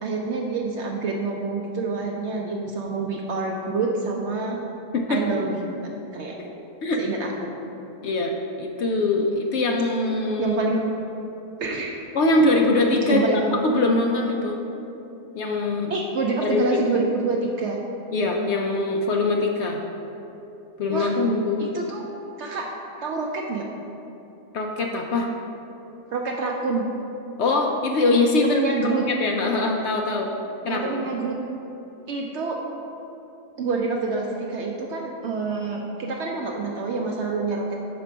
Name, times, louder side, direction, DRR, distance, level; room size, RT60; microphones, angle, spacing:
voice 1, 0.0-4.6 5.1-5.7 6.1-6.3 7.0-7.5 10.4-10.8 11.6-12.0 13.1-13.5 15.9-17.8 20.9-21.1 21.6-22.0 22.4-22.7 23.0-23.7 26.1-26.9 28.4-29.1 30.7-31.4 32.1-32.6 33.6-37.8, right 4 dB, 70° right, 0 dB, 0.6 m, -27 dB
voice 2, 8.0-8.3 8.6-10.6 12.1-14.6 15.3-15.9 16.4-17.0 18.1-19.8 20.8-21.6 24.5-25.3 27.4-28.6 29.1-30.3 30.6-30.9, left 2 dB, 65° left, 1 dB, 0.6 m, -22 dB
5.1 x 4.4 x 6.0 m, 2.9 s
omnidirectional pair, 1.7 m